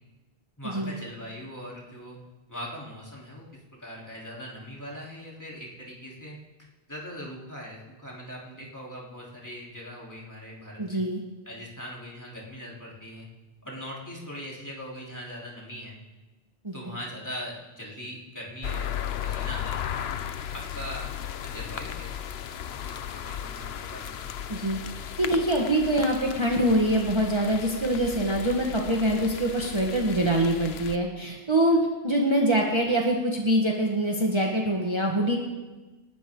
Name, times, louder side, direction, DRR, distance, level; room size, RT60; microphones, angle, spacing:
voice 1, 0.6-2.2 2.5-3.4 3.8-6.4 6.9-11.0 11.5-13.3 13.6-16.0 16.7-18.9 19.2-20.2 20.5-24.3, equal, 15° left, -5 dB, 3.7 m, -41 dB
voice 2, 10.8-11.2 16.6-16.7 24.5-24.8 25.2-35.4, right 1 dB, 25° right, -1 dB, 1.7 m, -24 dB
sound 1, 18.6-31.0, left 9 dB, 75° left, 1.0 m, -35 dB
29.0 x 12.0 x 3.9 m, 1.2 s
omnidirectional pair, 1.1 m